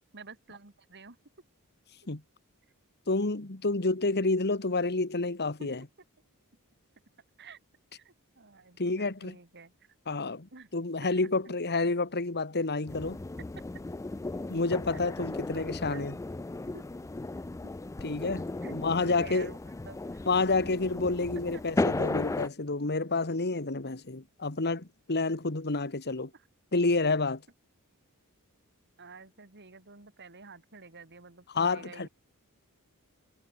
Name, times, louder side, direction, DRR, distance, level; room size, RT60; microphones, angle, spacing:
voice 1, 0.1-1.2 5.6-5.7 7.4-7.6 8.0-10.2 10.5-10.7 11.2-11.3 14.9-15.0 15.6-16.2 16.7-16.9 18.6-20.2 21.5-21.6 25.5-25.6 26.3-26.5 29.0-32.1, right 4 dB, 50° right, 3.7 m, -50 dB
voice 2, 3.1-5.8 8.8-9.4 10.1-13.2 14.5-16.1 18.0-19.5 20.3-26.3 26.7-27.4 31.5-32.1, left 3 dB, 50° left, 1.8 m, -29 dB
sound 1, 12.9-22.5, left 2 dB, 15° left, 0.3 m, -35 dB
head